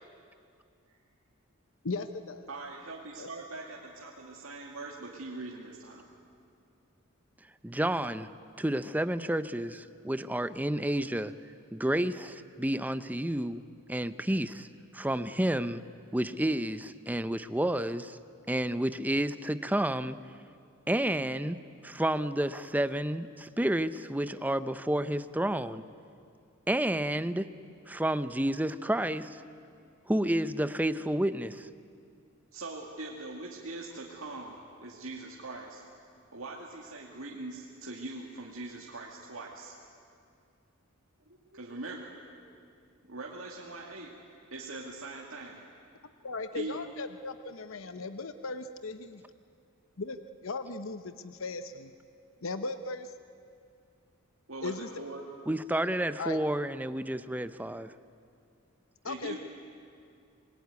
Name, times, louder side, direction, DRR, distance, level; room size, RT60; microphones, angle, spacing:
voice 1, 1.8-2.5 3.2-3.3 46.2-49.2 50.0-51.9 52.4-53.1 54.6-54.9 56.2-56.4 59.0-59.4, left 3 dB, 70° left, 10 dB, 0.9 m, -37 dB
voice 2, 2.5-6.1 32.5-35.8 36.3-39.8 41.3-42.3 43.1-44.1 44.5-45.6 46.5-46.8 54.5-55.2 59.0-59.4, right 2 dB, 70° right, -2 dB, 2.3 m, -42 dB
voice 3, 7.6-8.3 8.6-11.3 11.7-13.6 13.9-14.7 14.9-15.8 16.1-18.2 18.5-20.2 20.9-21.6 21.8-25.8 26.7-27.5 27.9-29.4 30.1-31.7 55.5-57.9, right 1 dB, 10° right, 12 dB, 0.6 m, -30 dB
26.5 x 20.5 x 9.5 m, 2.4 s
head